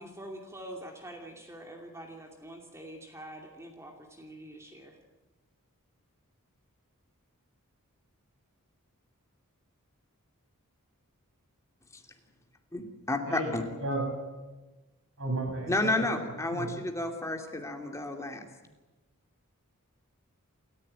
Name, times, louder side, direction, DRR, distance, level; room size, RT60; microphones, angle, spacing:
voice 1, 0.0-5.0, right 1 dB, 15° right, 2 dB, 2.6 m, -45 dB
voice 2, 12.7-13.6 15.7-18.5, left 2 dB, 15° left, 3 dB, 2.7 m, -31 dB
voice 3, 13.8-14.1 15.2-16.1 16.5-16.7, right 2 dB, 60° right, 3 dB, 7.6 m, -33 dB
28.5 x 14.5 x 8.9 m, 1.2 s
head